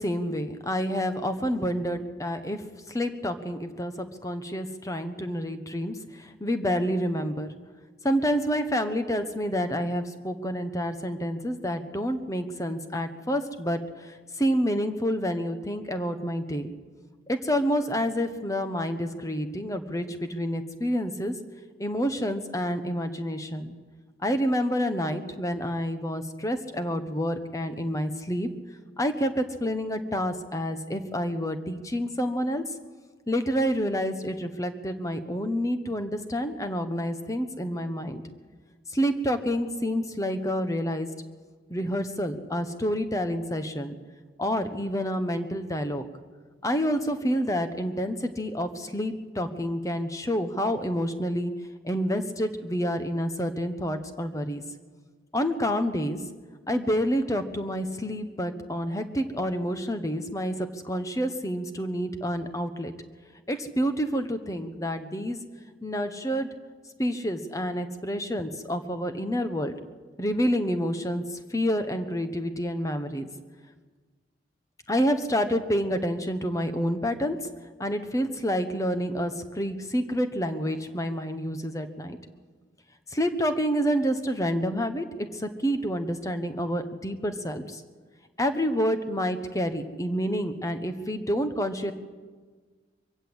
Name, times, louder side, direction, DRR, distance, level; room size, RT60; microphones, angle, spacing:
voice 1, 0.0-7.5 8.0-16.7 17.3-21.3 21.8-23.8 24.2-28.5 29.0-32.6 33.3-38.2 38.9-41.1 41.7-44.0 44.4-46.0 46.6-51.5 51.8-54.6 55.3-56.2 56.7-62.9 63.5-65.4 65.8-66.5 67.0-69.7 70.2-73.3 74.9-77.4 77.8-82.2 83.1-87.8 88.4-91.9, equal, 15° left, 8 dB, 1.2 m, -28 dB
23.0 x 15.5 x 8.2 m, 1.5 s
head